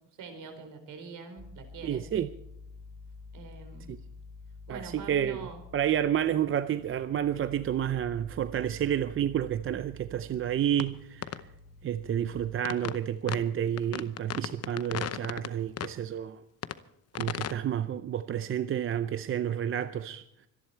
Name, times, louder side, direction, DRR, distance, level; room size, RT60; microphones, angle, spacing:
voice 1, 0.2-2.1 3.3-3.9 4.7-5.6, right 4 dB, 60° right, 4.6 m, -44 dB
sound 1, 1.4-12.4, equal, 15° right, 4.5 m, -49 dB
voice 2, 1.8-2.3 3.9-4.0 4.7-5.5 5.7-11.4 11.8-16.4 17.2-20.5, right 10 dB, 35° right, 0.6 m, -30 dB
sound 2, 10.8-10.9 11.2-11.4 12.6-13.0 13.3-13.4 13.8-15.5 15.8-15.9 16.6-16.8 17.1-17.5, left 10 dB, 40° left, 0.8 m, -34 dB
25.5 x 11.0 x 4.5 m
cardioid pair, 150°, 37 cm